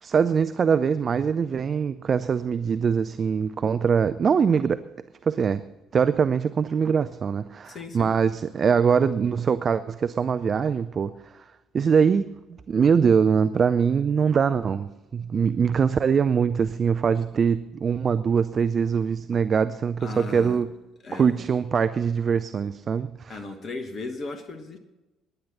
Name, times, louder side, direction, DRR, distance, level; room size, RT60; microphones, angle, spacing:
voice 1, 0.0-4.8 5.2-5.6 5.9-11.4 11.7-12.3 12.7-20.7 21.1-23.4, right 6 dB, 40° right, 13 dB, 0.4 m, -23 dB
voice 2, 7.6-8.1 20.0-20.6 21.0-21.4 23.3-24.8, left 3 dB, 40° left, 8 dB, 1.3 m, -36 dB
18.0 x 10.5 x 4.1 m, 1.0 s
figure-of-eight pair, 50°, 0 cm